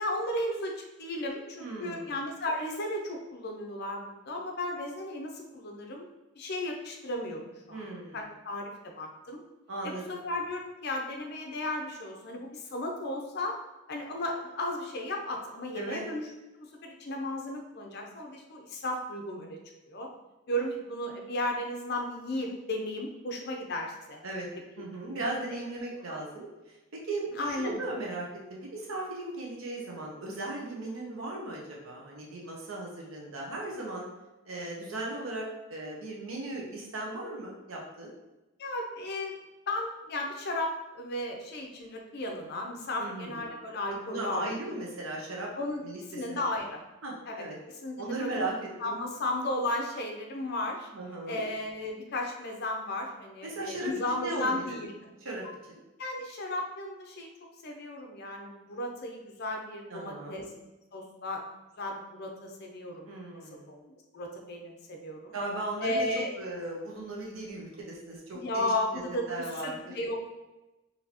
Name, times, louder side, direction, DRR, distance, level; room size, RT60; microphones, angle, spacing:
voice 1, 0.0-6.1 6.4-7.8 8.1-9.4 9.8-13.5 13.9-16.3 16.6-19.6 19.9-20.1 20.5-24.2 25.1-25.6 26.1-26.2 27.4-27.8 38.6-39.3 39.7-44.5 45.5-45.8 46.1-46.8 47.3-48.5 48.8-50.9 51.3-54.9 56.0-57.3 57.6-60.4 60.9-61.4 61.8-63.1 63.7-65.3 65.8-66.3 68.3-70.2, left 1 dB, 50° left, 2 dB, 0.6 m, -34 dB
voice 2, 1.6-2.1 7.7-8.2 9.7-10.2 15.7-16.0 24.2-24.5 24.8-34.1 34.4-38.1 43.0-43.5 44.1-45.5 45.8-46.0 46.3-46.4 47.0-47.6 48.0-49.0 50.9-51.5 53.4-54.8 55.2-55.8 59.9-60.5 63.1-63.7 65.3-66.1 66.4-69.9, right 2 dB, 80° right, -2 dB, 0.9 m, -37 dB
4.2 x 2.7 x 2.9 m, 1.0 s
head